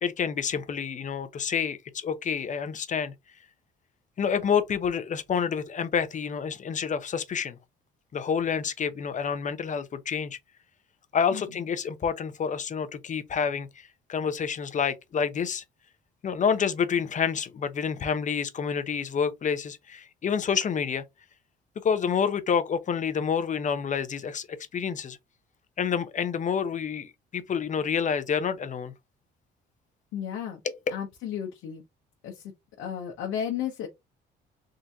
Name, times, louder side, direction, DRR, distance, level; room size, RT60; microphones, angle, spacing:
voice 1, 0.0-3.1 4.2-7.6 8.1-10.4 11.1-15.6 16.2-21.0 21.8-24.5 24.7-25.2 25.8-28.9 30.6-30.7, left 7 dB, 40° left, 0.7 m, -28 dB
voice 2, 30.1-30.6 30.9-31.8 32.2-32.4 32.8-33.9, left 9 dB, 80° left, 0.9 m, -33 dB
3.8 x 2.7 x 3.4 m
cardioid pair, 90°, 20 cm